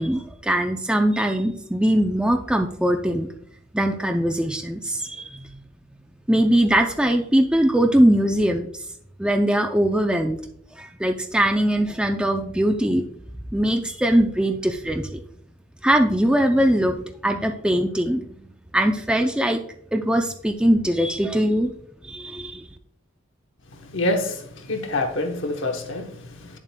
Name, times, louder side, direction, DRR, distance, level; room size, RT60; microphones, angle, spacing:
voice 1, 0.0-3.3 3.7-5.5 6.3-8.7 9.2-10.4 10.8-13.0 13.5-15.2 15.8-18.2 18.7-19.6 19.9-21.7 22.0-22.7, right 1 dB, 5° right, 4 dB, 0.4 m, -21 dB
voice 2, 23.8-26.6, left 2 dB, 60° left, 4 dB, 1.0 m, -27 dB
9.5 x 7.2 x 2.2 m, 0.68 s
head